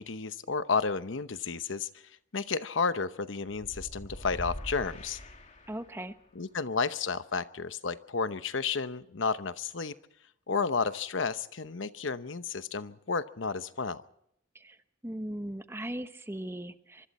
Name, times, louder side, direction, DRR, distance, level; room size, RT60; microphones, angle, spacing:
voice 1, 0.0-1.9 2.3-5.2 6.4-10.0 10.5-14.0, left 5 dB, 75° left, 12 dB, 0.9 m, -32 dB
sound 1, 3.6-6.1, equal, 40° left, 2.6 m, -43 dB
voice 2, 5.7-6.1 14.5-14.8 15.0-17.1, right 1 dB, 15° right, 9 dB, 1.0 m, -38 dB
25.0 x 25.0 x 4.3 m, 0.72 s
head